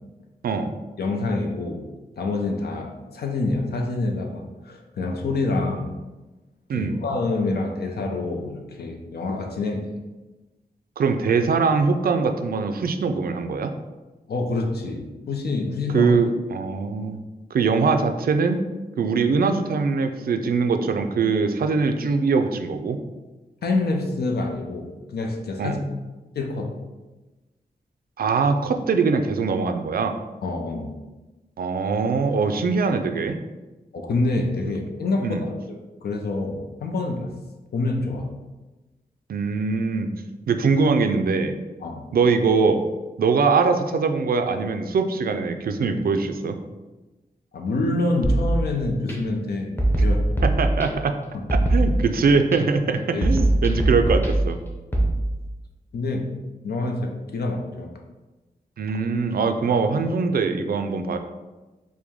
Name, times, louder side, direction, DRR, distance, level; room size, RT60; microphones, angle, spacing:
voice 1, 0.4-0.8 6.7-7.0 11.0-13.7 15.9-17.2 17.5-18.6 19.0-23.0 25.6-25.8 28.2-30.2 31.6-33.4 35.2-35.5 39.3-40.1 40.5-41.5 42.1-42.8 43.2-46.6 50.4-51.2 51.7-54.6 58.8-61.2, right 4 dB, 70° right, 7 dB, 0.4 m, -22 dB
voice 2, 1.0-1.9 2.2-6.0 6.7-9.9 14.3-16.2 23.6-25.8 26.3-26.7 30.4-30.9 33.9-35.5 36.0-37.3 37.7-38.3 41.8-42.1 47.5-50.5 53.1-53.3 55.9-56.3 56.6-57.9, left 2 dB, 85° left, 2 dB, 0.6 m, -26 dB
sound 1, 48.2-49.1 49.8-51.1 51.5-52.6 53.2-55.1, right 1 dB, 15° left, 0.7 m, -22 dB
4.7 x 2.2 x 3.5 m, 1.1 s
wide cardioid pair, 105°, 16 cm